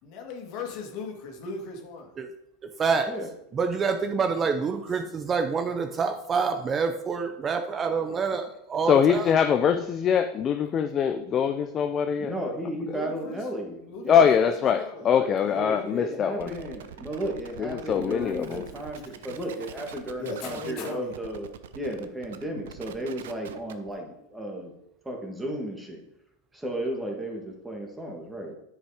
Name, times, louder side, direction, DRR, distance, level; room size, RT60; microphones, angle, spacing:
voice 1, 0.0-2.2 4.9-5.0 12.8-13.5 13.9-16.5 18.7-18.8 19.9-21.1, left 3 dB, 50° left, 3 dB, 2.1 m, -39 dB
voice 2, 3.5-9.3, right 5 dB, 25° right, 6 dB, 0.7 m, -27 dB
voice 3, 8.9-12.3 14.1-16.5 17.6-18.7, left 7 dB, 30° left, 8 dB, 0.5 m, -23 dB
voice 4, 12.2-14.4 15.0-21.5 21.8-24.7 25.0-26.0 26.5-28.5, right 1 dB, 5° right, 1 dB, 1.9 m, -34 dB
sound 1, 16.4-23.9, right 9 dB, 85° right, 0.8 m, -44 dB
9.7 x 5.5 x 5.0 m, 0.80 s
supercardioid pair, 140°, 0 cm